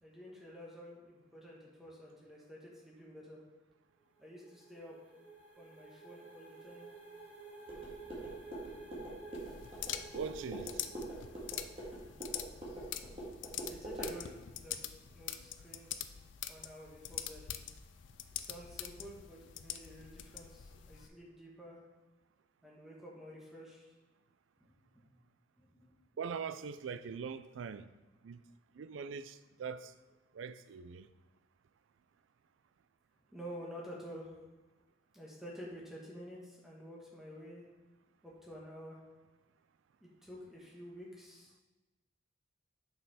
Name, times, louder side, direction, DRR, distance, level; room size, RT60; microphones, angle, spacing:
voice 1, 0.0-3.4 4.2-5.0 5.6-6.9 13.7-16.2 16.5-17.4 18.4-21.8 22.6-23.8 24.6-25.0 25.6-25.9 33.3-34.4 35.1-37.6 38.2-39.0 40.0-41.5, equal, ahead, 1.3 m, -50 dB
sound 1, 4.0-12.6, right 4 dB, 55° right, 2.5 m, -53 dB
sound 2, 7.7-14.2, right 1 dB, 30° right, 1.8 m, -45 dB
sound 3, 9.3-21.1, left 11 dB, 75° left, 0.4 m, -45 dB
voice 2, 10.1-10.8 26.2-27.9 28.2-28.4 28.8-29.9 30.3-31.1, right 6 dB, 85° right, 0.4 m, -42 dB
6.4 x 5.7 x 4.1 m
head